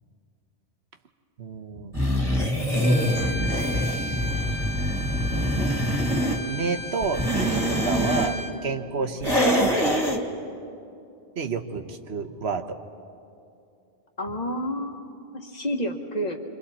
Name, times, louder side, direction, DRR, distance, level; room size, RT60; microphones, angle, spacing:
voice 1, 1.4-2.0 3.7-4.3 6.5-8.4 8.6-10.0 11.4-12.8, right 5 dB, 85° right, 7 dB, 1.3 m, -30 dB
sound 1, 1.9-6.4 7.0-8.3 9.2-10.2, equal, 25° right, 2.1 m, -24 dB
Bowed string instrument, 2.8-8.6, left 2 dB, 70° right, 1.7 m, -35 dB
voice 2, 14.2-16.4, equal, 40° left, 3 dB, 1.6 m, -30 dB
29.0 x 25.0 x 4.3 m, 2.6 s
omnidirectional pair, 1.1 m